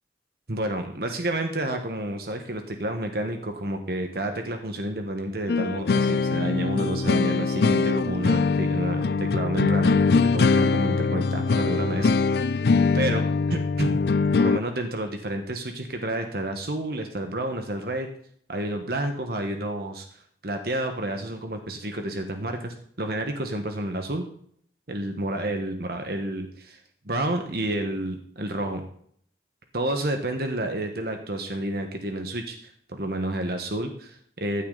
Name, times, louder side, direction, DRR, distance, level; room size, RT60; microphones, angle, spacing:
voice 1, 0.5-12.6 12.9-13.2 13.5-14.0 14.4-18.1 18.5-24.2 24.9-26.8 27.0-28.8 29.7-34.6, right 1 dB, 60° right, 5 dB, 1.4 m, -30 dB
sound 1, 5.5-14.6, left 4 dB, 60° left, 0.4 m, -22 dB
15.5 x 9.6 x 4.0 m, 0.62 s
head